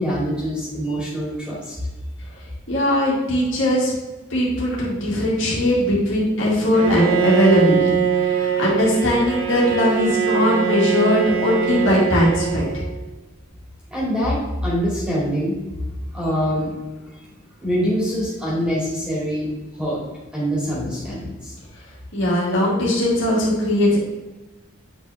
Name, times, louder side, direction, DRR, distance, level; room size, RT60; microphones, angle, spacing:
voice 1, 0.0-1.7 13.9-15.5 16.1-16.7 17.1-17.2 17.6-19.5 19.8-20.0 20.3-21.5, equal, 5° right, -7 dB, 2.4 m, -24 dB
voice 2, 2.7-3.9 4.3-12.7 22.1-24.1, left 1 dB, 65° left, -5 dB, 2.4 m, -19 dB
Bowed string instrument, 6.7-13.0, right 7 dB, 80° right, 1.2 m, -22 dB
8.5 x 5.3 x 3.5 m, 1.1 s
head